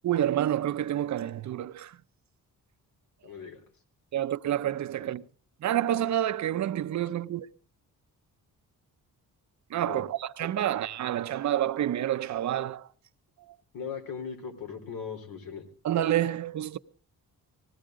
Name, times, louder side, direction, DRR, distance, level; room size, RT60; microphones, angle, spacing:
voice 1, 0.0-2.0 4.1-5.2 5.6-7.5 9.7-12.9 13.5-13.6 15.8-16.8, right 11 dB, 55° right, 0.7 m, -28 dB
voice 2, 3.2-3.6 5.0-5.1 9.9-10.0 13.7-15.6, left 6 dB, 85° left, 3.8 m, -39 dB
20.0 x 15.5 x 3.7 m
wide cardioid pair, 175°, 35 cm